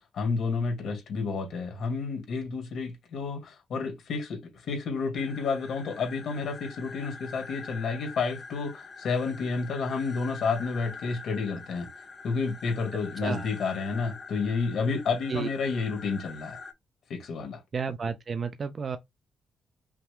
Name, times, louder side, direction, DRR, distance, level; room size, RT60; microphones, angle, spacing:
voice 1, 0.0-4.4 4.7-11.9 12.2-16.6 17.1-17.6, left 4 dB, 70° left, 2.1 m, -30 dB
sound 1, 5.1-16.7, left 4 dB, 40° left, 1.0 m, -44 dB
voice 2, 17.7-19.0, right 5 dB, 40° right, 0.5 m, -31 dB
5.8 x 3.3 x 2.2 m
cardioid pair, 130°, 0 cm